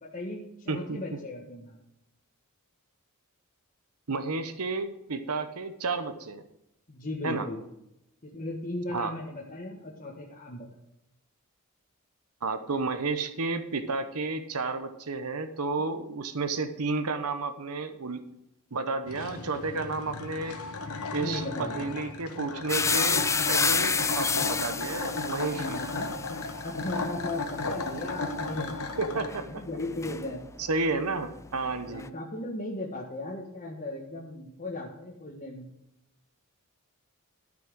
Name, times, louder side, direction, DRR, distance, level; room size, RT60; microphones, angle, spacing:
voice 1, 0.0-1.8 6.9-7.6 8.2-10.7 21.2-21.9 25.5-26.1 26.6-28.8 29.3-30.4 31.8-35.7, left 1 dB, 40° left, -4 dB, 1.6 m, -37 dB
voice 2, 0.7-1.0 4.1-6.4 7.2-7.5 8.9-9.1 12.4-18.2 18.7-20.6 21.1-25.8 29.0-29.6 30.6-32.0, right 3 dB, 90° right, 9 dB, 1.0 m, -31 dB
sound 1, 19.1-29.3, left 3 dB, 75° left, 1.1 m, -35 dB
sound 2, 22.7-30.7 30.9-32.1, left 5 dB, 15° left, 0.3 m, -30 dB
13.0 x 6.1 x 6.2 m, 0.85 s
head